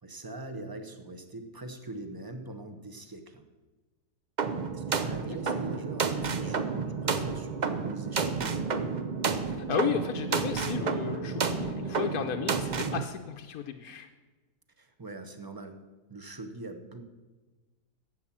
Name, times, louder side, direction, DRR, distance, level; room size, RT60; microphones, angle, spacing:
voice 1, 0.0-3.5 4.7-8.9 14.8-15.8 16.1-17.0, right 2 dB, 20° right, 7 dB, 0.7 m, -42 dB
sound 1, 4.4-13.0, right 5 dB, 70° right, 0.4 m, -31 dB
voice 2, 5.2-5.6 9.6-14.1, left 7 dB, 65° left, 4 dB, 1.2 m, -34 dB
11.0 x 8.0 x 7.4 m, 1.3 s
omnidirectional pair, 1.8 m